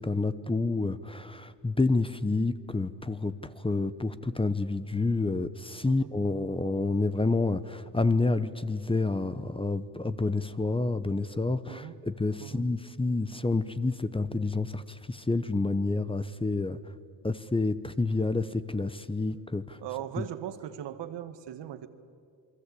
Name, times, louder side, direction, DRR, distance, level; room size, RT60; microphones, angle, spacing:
voice 1, 0.0-16.8 17.2-19.8 20.2-20.3, left 3 dB, 10° left, 13 dB, 1.0 m, -29 dB
voice 2, 19.8-21.9, right 11 dB, 75° right, 10 dB, 1.7 m, -39 dB
28.5 x 21.5 x 8.6 m, 2.3 s
cardioid pair, 90°, 43 cm